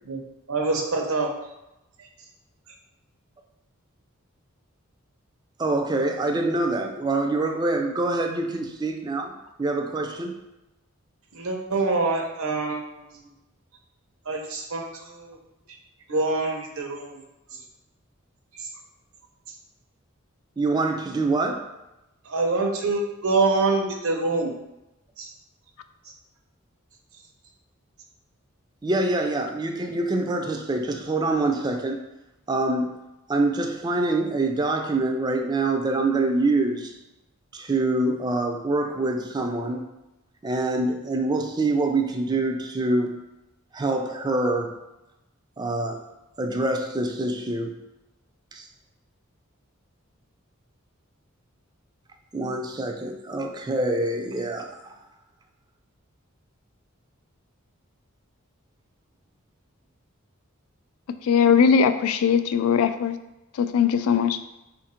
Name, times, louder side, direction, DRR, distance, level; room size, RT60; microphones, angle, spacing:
voice 1, 0.5-1.3 11.3-13.0 14.3-15.4 16.1-17.2 18.6-18.7 22.2-24.5 25.2-25.3, right 3 dB, 90° right, 2 dB, 0.8 m, -25 dB
voice 2, 5.6-9.3 9.6-10.4 20.6-21.6 28.8-32.0 32.5-33.0 33.3-37.0 37.5-39.9 40.4-43.2 43.7-44.7 45.6-46.0 46.4-47.8 48.5-48.7 52.3-54.9, right 2 dB, 20° right, 3 dB, 0.4 m, -25 dB
voice 3, 61.2-63.2 63.6-64.4, left 7 dB, 85° left, 10 dB, 0.3 m, -20 dB
4.1 x 2.6 x 4.2 m, 0.94 s
head